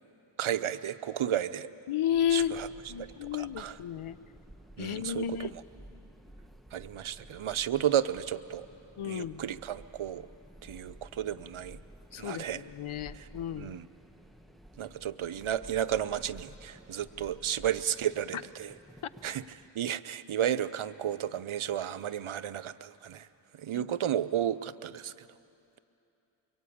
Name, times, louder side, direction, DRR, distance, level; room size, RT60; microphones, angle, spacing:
voice 1, 0.4-1.7 2.3-2.7 3.0-3.8 4.8-5.6 6.7-8.7 9.0-10.3 10.6-11.8 12.2-12.6 13.1-13.9 14.8-18.7 19.2-19.4 19.7-23.3 23.6-25.1, right 10 dB, 80° right, 13 dB, 0.8 m, -33 dB
voice 2, 1.9-2.5 2.9-4.2 4.8-5.5 9.0-9.4 12.1-13.7 23.7-23.9, left 10 dB, 80° left, 15 dB, 0.8 m, -32 dB
sound 1, 2.1-19.7, right 1 dB, ahead, 1.3 m, -53 dB
24.0 x 23.0 x 8.6 m, 2.8 s
wide cardioid pair, 70°, 48 cm